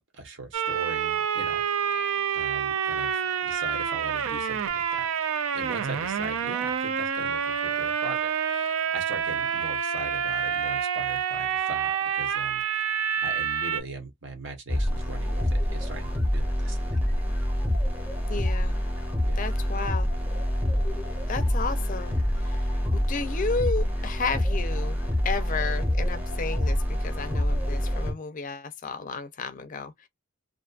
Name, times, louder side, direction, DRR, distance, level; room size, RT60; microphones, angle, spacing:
voice 1, 0.1-1.6 2.3-5.1 5.5-12.6 13.2-17.0 19.2-19.4, right 2 dB, 60° right, 0.9 m, -40 dB
sound 1, 0.5-13.8, right 7 dB, 75° right, 0.4 m, -28 dB
sound 2, 14.7-28.1, equal, 10° right, 0.8 m, -26 dB
voice 2, 18.3-18.8 19.4-20.1 21.3-25.0 25.2-30.1, left 4 dB, 40° left, 0.5 m, -33 dB
2.5 x 2.3 x 2.4 m
head